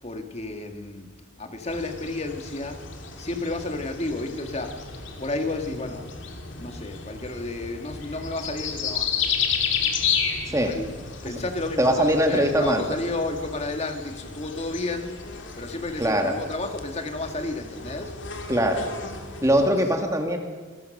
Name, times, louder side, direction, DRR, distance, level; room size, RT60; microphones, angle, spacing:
voice 1, 0.0-1.1 1.4-2.8 3.2-4.9 5.2-6.1 6.6-9.3 10.4-10.9 11.2-15.2 15.6-18.1, left 2 dB, 30° left, 6 dB, 1.9 m, -32 dB
sound 1, 1.7-19.7, left 6 dB, 65° left, 2.5 m, -33 dB
voice 2, 11.8-12.9 16.0-16.3 18.5-18.9 19.4-20.4, equal, 15° right, 4 dB, 1.9 m, -21 dB
26.5 x 18.5 x 6.6 m, 1.5 s
head